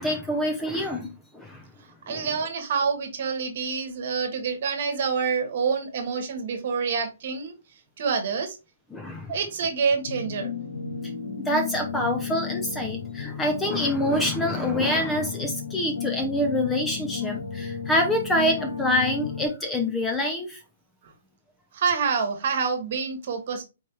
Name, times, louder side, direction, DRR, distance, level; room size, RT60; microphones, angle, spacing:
voice 1, 0.0-1.6 2.1-2.3 8.9-9.3 11.5-20.6, left 1 dB, 5° left, 4 dB, 0.5 m, -26 dB
voice 2, 2.1-7.5 8.0-8.6 9.3-10.5 21.0-21.1 21.7-23.6, right 5 dB, 50° right, 5 dB, 1.2 m, -27 dB
sound 1, 10.0-19.5, left 7 dB, 75° left, 2.5 m, -33 dB
4.4 x 3.3 x 2.9 m, 0.27 s
hypercardioid pair, 165°, 0 cm